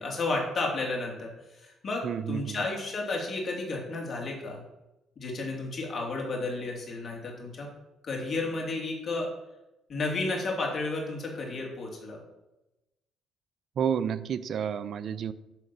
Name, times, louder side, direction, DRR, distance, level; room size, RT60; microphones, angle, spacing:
voice 1, 0.0-4.6 5.2-7.7 8.0-9.3 9.9-12.2, left 2 dB, 50° left, 0 dB, 3.1 m, -32 dB
voice 2, 2.0-2.7 13.8-15.3, right 8 dB, 60° right, 15 dB, 0.6 m, -30 dB
10.5 x 3.8 x 7.4 m, 0.98 s
supercardioid pair, 65°, 0 cm